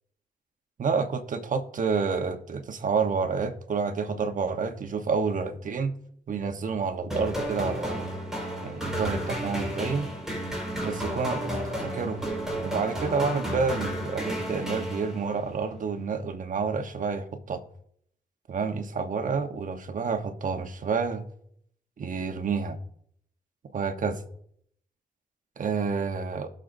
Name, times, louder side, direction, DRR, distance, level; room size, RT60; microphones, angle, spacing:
voice 1, 0.8-5.9 6.3-8.1 8.6-10.1 10.8-12.3 12.6-17.6 18.5-21.2 22.0-22.8 23.7-24.2 25.6-26.5, right 5 dB, 60° right, 7 dB, 1.1 m, -29 dB
sound 1, 7.1-15.5, equal, 5° right, 4.6 m, -32 dB
19.5 x 6.5 x 2.7 m, 0.67 s
cardioid pair, 85°, 15 cm